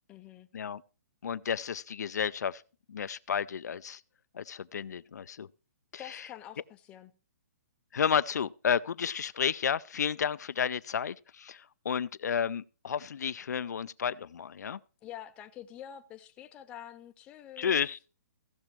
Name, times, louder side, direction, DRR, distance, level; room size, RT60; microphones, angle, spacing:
voice 1, 0.1-0.5 6.0-7.1 15.0-17.8, left 11 dB, 10° left, 0.4 m, -47 dB
voice 2, 1.2-2.6 2.9-4.0 4.3-5.5 5.9-6.2 7.9-14.8 17.6-18.1, left 7 dB, 85° left, 0.4 m, -32 dB
15.5 x 6.2 x 4.4 m
hypercardioid pair, 165°, 9 cm